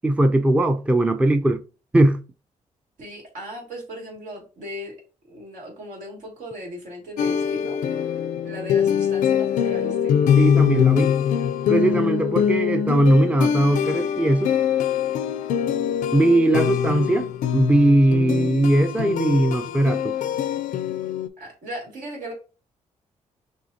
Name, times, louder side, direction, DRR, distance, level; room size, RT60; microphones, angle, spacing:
voice 1, 0.0-1.6 1.9-2.2 10.4-11.2 11.7-14.5 16.1-20.2, right 1 dB, 10° right, 0.4 m, -19 dB
voice 2, 3.0-4.9 5.3-7.8 8.1-10.2 21.4-22.3, equal, 85° right, 2.2 m, -37 dB
sound 1, 7.2-21.3, left 8 dB, 80° left, 0.4 m, -23 dB
6.1 x 2.7 x 2.7 m
cardioid pair, 100°, 13 cm